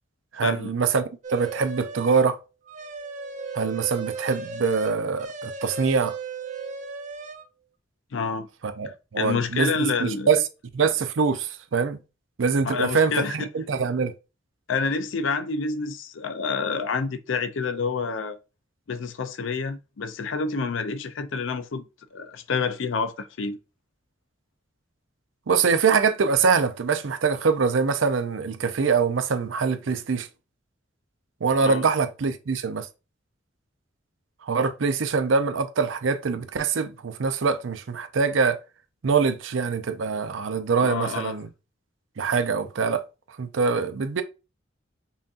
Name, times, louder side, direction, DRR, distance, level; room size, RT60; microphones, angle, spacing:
voice 1, 0.3-2.4 3.5-6.2 8.6-10.4 10.7-12.0 12.4-14.1 25.5-30.3 31.4-32.9 34.4-38.6 39.0-41.5 42.2-43.0 43.4-44.2, right 5 dB, 85° right, 0.5 m, -24 dB
sound 1, 1.2-2.3 2.7-7.5, right 4 dB, 40° right, 0.5 m, -36 dB
voice 2, 8.1-8.5 9.2-10.3 12.6-13.5 14.7-18.4 18.9-21.8 22.1-23.6 31.6-31.9 40.8-41.3, left 4 dB, 85° left, 0.5 m, -28 dB
5.6 x 2.7 x 2.5 m
head